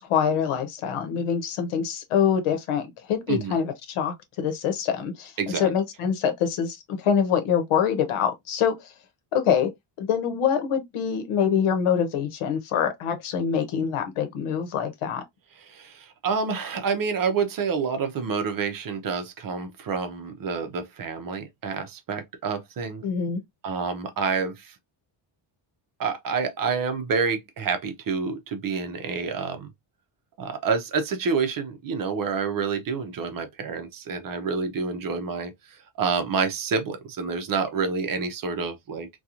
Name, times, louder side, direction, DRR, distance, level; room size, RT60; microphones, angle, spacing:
voice 1, 0.0-8.9 9.3-9.7 10.0-15.2 23.0-23.4, left 7 dB, 80° left, 0.9 m, -25 dB
voice 2, 5.4-5.7 15.5-23.0 23.6-24.8 26.0-29.7 30.4-39.1, right 5 dB, 45° right, 0.6 m, -28 dB
2.9 x 2.3 x 2.4 m
cardioid pair, 145°, 49 cm